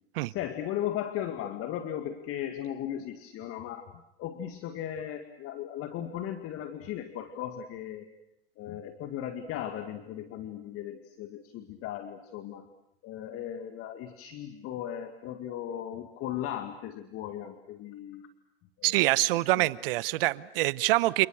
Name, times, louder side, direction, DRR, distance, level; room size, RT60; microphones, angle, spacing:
voice 1, 0.3-3.9 4.2-8.1 8.6-12.7 13.0-18.3 18.8-19.2 19.6-19.7, left 10 dB, 45° left, 8 dB, 2.1 m, -37 dB
voice 2, 18.8-21.3, right 19 dB, 65° right, 19 dB, 1.0 m, -25 dB
29.0 x 29.0 x 6.6 m, 0.85 s
hypercardioid pair, 90°, 31 cm